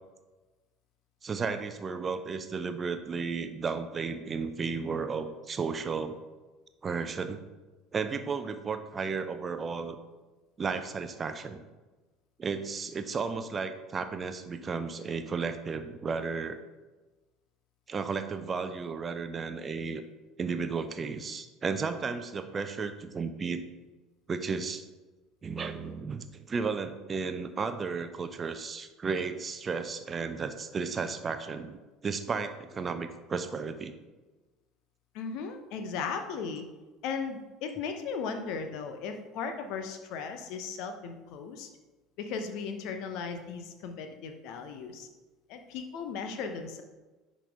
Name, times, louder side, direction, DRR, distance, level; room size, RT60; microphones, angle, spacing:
voice 1, 1.2-6.2 6.8-7.4 7.9-10.0 10.6-11.6 12.4-16.6 17.9-20.0 20.4-23.6 24.3-24.8 25.4-33.9, right 5 dB, 25° right, 9 dB, 0.6 m, -33 dB
voice 2, 35.1-36.6 37.0-41.7 42.2-45.1 45.5-46.8, left 5 dB, 55° left, 6 dB, 0.8 m, -36 dB
10.0 x 4.2 x 3.5 m, 1.2 s
figure-of-eight pair, 65°, 0 cm